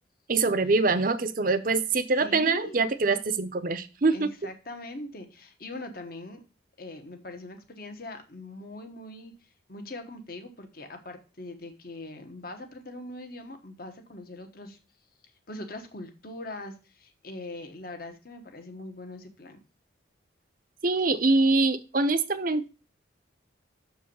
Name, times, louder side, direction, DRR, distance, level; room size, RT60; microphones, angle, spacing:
voice 1, 0.3-4.3 20.8-22.7, right 3 dB, 45° right, 12 dB, 0.7 m, -24 dB
voice 2, 2.2-2.8 4.1-6.4 6.8-9.3 9.7-14.8 15.5-19.6, left 2 dB, 50° left, 6 dB, 1.2 m, -41 dB
6.9 x 4.7 x 6.8 m, 0.33 s
head